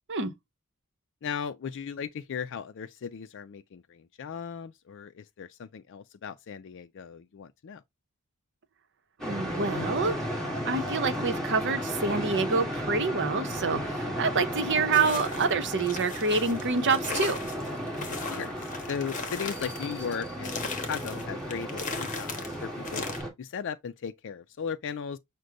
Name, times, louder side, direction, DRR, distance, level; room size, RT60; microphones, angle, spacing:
voice 1, 1.2-7.8 18.1-23.0 23.4-25.2, left 7 dB, 55° left, 0.4 m, -37 dB
sound 1, 9.2-23.3, equal, ahead, 1.9 m, -34 dB
voice 2, 9.2-10.3 10.7-17.4, right 4 dB, 55° right, 0.9 m, -27 dB
sound 2, 14.9-23.2, left 4 dB, 35° left, 1.1 m, -38 dB
6.3 x 2.2 x 3.8 m
head